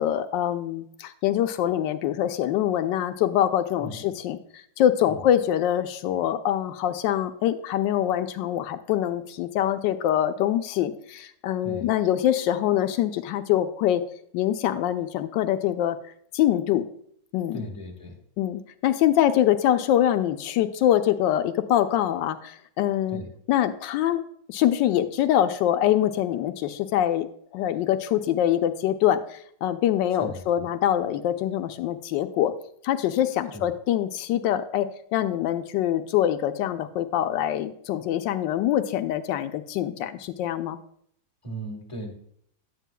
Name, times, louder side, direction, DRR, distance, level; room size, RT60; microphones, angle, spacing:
voice 1, 0.0-4.4 4.8-14.0 14.3-16.0 16.3-16.9 17.3-17.7 18.4-23.2 23.5-24.2 24.5-27.3 27.5-32.5 32.8-40.8, left 11 dB, 90° left, 8 dB, 1.3 m, -24 dB
voice 2, 3.8-4.1 5.1-5.2 11.6-11.9 17.5-18.2 23.1-23.3 30.2-30.7 33.5-33.7 41.4-42.1, right 1 dB, 20° left, 1 dB, 1.4 m, -38 dB
11.0 x 9.0 x 2.2 m, 0.66 s
omnidirectional pair, 1.9 m